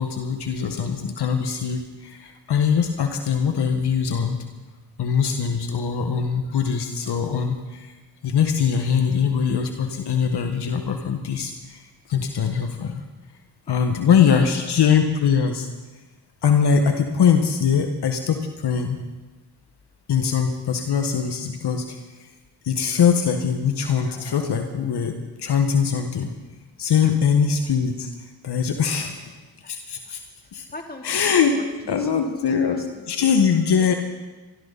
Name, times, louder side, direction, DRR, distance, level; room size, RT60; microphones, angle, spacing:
voice 1, 0.0-4.4 5.0-7.9 8.2-13.0 13.7-15.7 16.4-19.0 20.1-22.3 22.6-26.3 26.8-29.3 29.7-30.2 30.5-30.6 31.0-31.5 31.9-33.9, left 7 dB, 70° left, 5 dB, 1.5 m, -22 dB
voice 2, 14.2-14.6 27.0-27.1 29.0-29.1 29.4-29.7 30.0-30.1 30.4-33.4 33.8-34.0, left 2 dB, 25° left, 2 dB, 3.2 m, -42 dB
25.5 x 13.0 x 4.1 m, 1.2 s
cardioid pair, 60°, 41 cm